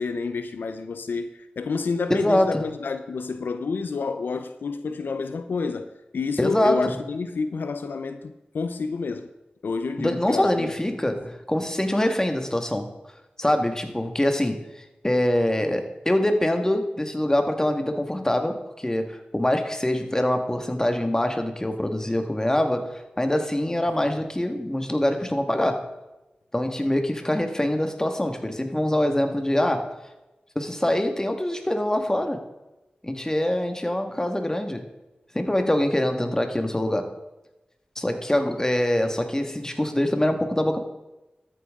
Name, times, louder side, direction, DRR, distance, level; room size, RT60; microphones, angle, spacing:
voice 1, 0.0-5.9 6.1-9.3 9.6-10.7, left 4 dB, 85° left, 0.6 m, -29 dB
voice 2, 2.1-2.6 6.4-6.9 10.0-12.9 13.4-25.9 26.5-30.0 30.6-32.4 33.0-34.9 35.3-37.1 38.0-40.8, left 1 dB, 20° left, 1.7 m, -24 dB
13.0 x 8.9 x 3.7 m
cardioid pair, 45°, 3 cm